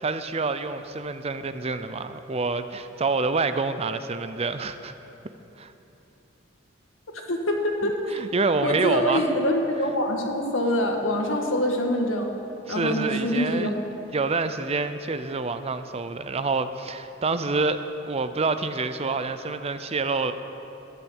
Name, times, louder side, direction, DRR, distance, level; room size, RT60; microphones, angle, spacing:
voice 1, 0.0-4.9 5.6-5.7 7.8-9.2 12.7-13.7 14.1-20.3, right 3 dB, 30° right, 10 dB, 0.5 m, -27 dB
voice 2, 7.3-8.0 8.6-12.3 12.7-13.8, left 1 dB, 80° left, 2 dB, 1.8 m, -25 dB
12.5 x 10.0 x 8.1 m, 2.9 s
head